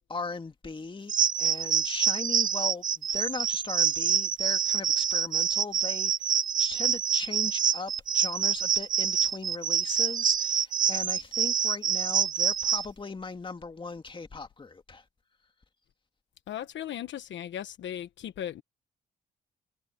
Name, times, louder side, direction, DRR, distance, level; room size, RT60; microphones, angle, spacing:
voice 1, 0.1-6.3 6.6-15.0, left 4 dB, 25° left, 2.3 m, -38 dB
sound 1, 1.1-12.9, right 8 dB, 40° right, 0.7 m, -26 dB
voice 2, 16.5-18.6, left 10 dB, 70° left, 1.1 m, -37 dB
cardioid pair, 90°, 20 cm